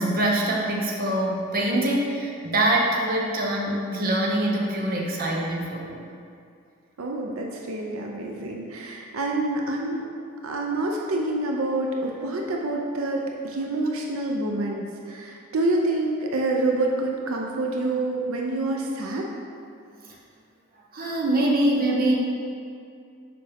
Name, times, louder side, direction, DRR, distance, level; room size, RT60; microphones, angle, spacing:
voice 1, 0.0-6.0 20.9-22.2, right 1 dB, 45° right, -2 dB, 0.9 m, -24 dB
voice 2, 7.0-10.1 10.4-19.3, right 2 dB, 85° right, 0 dB, 0.6 m, -27 dB
6.8 x 5.1 x 3.5 m, 2.4 s
head